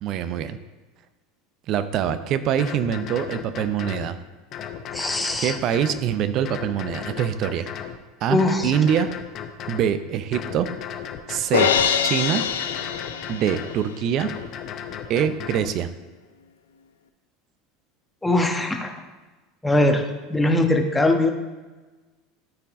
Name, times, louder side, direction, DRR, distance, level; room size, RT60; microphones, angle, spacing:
voice 1, 0.0-0.6 1.7-4.2 5.4-7.7 8.2-9.1 9.7-10.7 11.3-11.7 12.0-12.4 13.3-14.3 15.1-15.9, right 9 dB, 50° right, 12 dB, 0.6 m, -24 dB
sound 1, 2.0-2.2 2.6-4.1 4.5-6.0 6.4-8.0 8.4-9.9 10.3-11.8 12.3-13.8 14.2-15.7, left 8 dB, 45° left, 0.8 m, -35 dB
voice 2, 4.9-5.5 8.3-8.7 18.2-18.9 19.6-20.0 20.3-21.3, left 2 dB, 10° left, 3 dB, 1.2 m, -21 dB
Crash cymbal, 11.5-13.8, left 8 dB, 80° left, 0.5 m, -23 dB
13.0 x 4.6 x 3.7 m, 1.2 s
hypercardioid pair, 85°, 0 cm